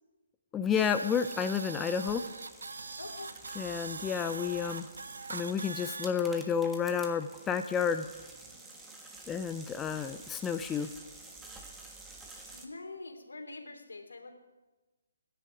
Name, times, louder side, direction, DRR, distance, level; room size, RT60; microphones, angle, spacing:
voice 1, 0.5-2.2 3.6-4.9 5.3-8.1 9.3-10.9, left 7 dB, 10° left, 8 dB, 0.5 m, -31 dB
sound 1, 0.7-12.7, right 2 dB, 10° right, 1.6 m, -51 dB
sound 2, 0.8-6.1, right 4 dB, 75° right, 0.9 m, -42 dB
voice 2, 3.0-3.3 12.5-14.3, left 3 dB, 80° left, 4 dB, 2.9 m, -44 dB
23.5 x 10.5 x 4.9 m, 1.2 s
figure-of-eight pair, 145°, 0 cm